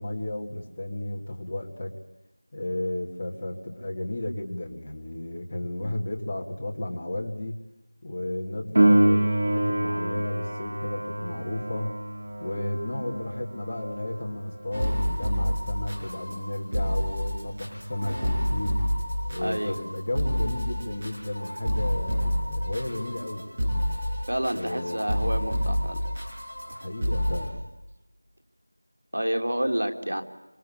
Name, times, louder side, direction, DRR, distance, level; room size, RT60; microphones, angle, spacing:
voice 1, 0.0-1.9 2.5-7.6 8.0-11.9 12.4-18.8 19.3-23.6 24.5-25.2 26.7-27.6, left 1 dB, 15° left, -1 dB, 1.9 m, -33 dB
Piano, 8.7-19.1 26.7-26.8, right 1 dB, 30° right, 2.9 m, -28 dB
sound 1, 14.7-27.5, equal, 15° right, 5.8 m, -28 dB
voice 2, 19.4-19.8 24.3-26.1 29.1-30.2, right 1 dB, 85° right, 5 dB, 3.6 m, -29 dB
27.0 x 25.5 x 8.6 m, 1.0 s
figure-of-eight pair, 180°, 0 cm